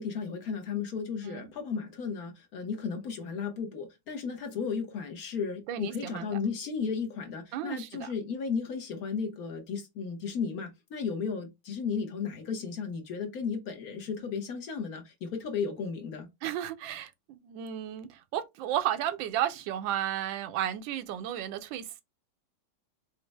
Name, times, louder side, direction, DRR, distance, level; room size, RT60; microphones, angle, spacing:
voice 1, 0.0-16.3, left 5 dB, 60° left, 1.1 m, -34 dB
voice 2, 5.7-6.4 7.5-8.1 16.4-22.0, right 11 dB, 75° right, 1.3 m, -33 dB
5.3 x 2.0 x 3.3 m
omnidirectional pair, 2.2 m